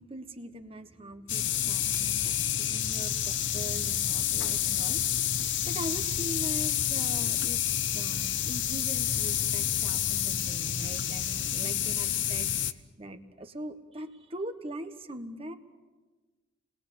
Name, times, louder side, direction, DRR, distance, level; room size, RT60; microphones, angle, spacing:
voice 1, 0.0-5.0 5.7-7.6 7.9-12.5 13.0-15.5, right 1 dB, 30° right, 7 dB, 1.4 m, -41 dB
sound 1, 1.3-12.7, left 10 dB, 90° left, 0.9 m, -29 dB
30.0 x 21.0 x 7.1 m, 1.3 s
head